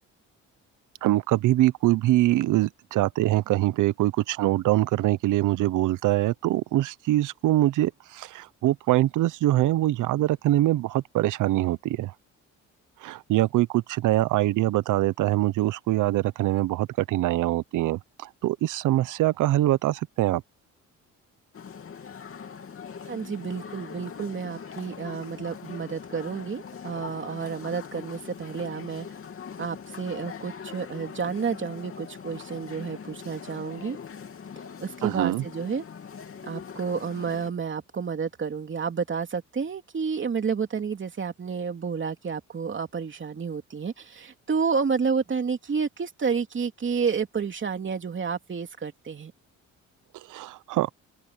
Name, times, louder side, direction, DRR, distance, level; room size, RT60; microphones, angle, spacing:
voice 1, 1.0-12.1 13.0-18.0 18.4-20.4 35.0-35.4 50.3-50.9, right 15 dB, 85° right, 0.8 m, -23 dB
sound 1, 21.5-37.5, left 6 dB, 45° left, 3.0 m, -41 dB
voice 2, 23.1-29.1 29.6-34.0 34.8-35.8 36.4-49.3, right 6 dB, 40° right, 3.1 m, -30 dB
open air
cardioid pair, 90°, 30 cm